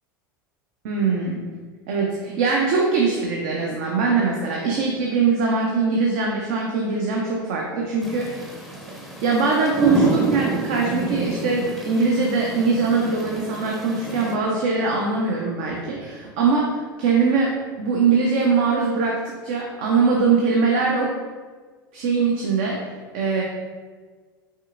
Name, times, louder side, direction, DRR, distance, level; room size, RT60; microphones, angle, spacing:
voice 1, 0.8-1.4 1.9-8.6 9.2-21.1 21.9-22.8 23.1-23.4, right 4 dB, 55° right, -1 dB, 0.6 m, -22 dB
sound 1, 8.0-14.4, right 1 dB, ahead, 0.6 m, -29 dB
5.4 x 3.3 x 2.5 m, 1.5 s
figure-of-eight pair, 80°, 11 cm